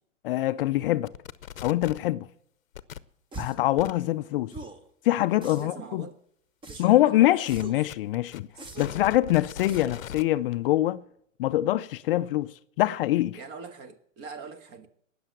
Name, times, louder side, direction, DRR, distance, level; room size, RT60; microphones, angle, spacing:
voice 1, 0.2-1.1 1.6-2.3 3.4-4.5 5.0-6.1 6.8-8.5 8.8-11.0 11.4-13.4, left 15 dB, 45° left, 0.5 m, -24 dB
sound 1, 1.1-2.1 2.7-3.0 3.8-3.9 7.5-10.2, left 10 dB, 85° left, 0.8 m, -40 dB
sound 2, 3.3-3.7 4.5-4.9 5.4-5.9 6.6-7.1 7.5-7.9 8.6-9.1 9.7-10.1, right 3 dB, 10° right, 1.0 m, -42 dB
voice 2, 5.4-6.2 6.7-7.7 8.5-9.1 13.3-14.9, right 4 dB, 35° right, 1.6 m, -44 dB
18.5 x 6.9 x 7.5 m
hypercardioid pair, 125°, 39 cm